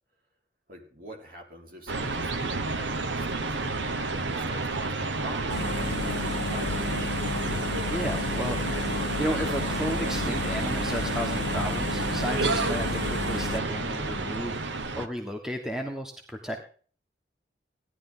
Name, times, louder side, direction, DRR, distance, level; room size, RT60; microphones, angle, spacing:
voice 1, 0.7-6.9, right 1 dB, 50° right, 1 dB, 4.3 m, -45 dB
sound 1, 1.9-15.1, right 3 dB, 80° right, 1.2 m, -30 dB
sound 2, 5.5-13.6, left 4 dB, 70° left, 0.5 m, -33 dB
voice 2, 7.9-16.6, equal, 5° right, 3 dB, 1.3 m, -34 dB
16.5 x 11.0 x 3.9 m, 0.43 s
head